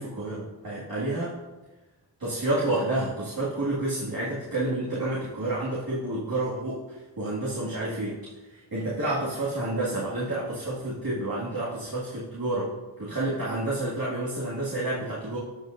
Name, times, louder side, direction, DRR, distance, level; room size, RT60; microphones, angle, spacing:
voice 1, 0.0-1.3 2.2-6.8 7.2-8.3 8.7-12.7 13.0-15.4, right 2 dB, 55° right, -8 dB, 2.0 m, -29 dB
14.0 x 6.4 x 2.6 m, 1.2 s
wide cardioid pair, 75°, 43 cm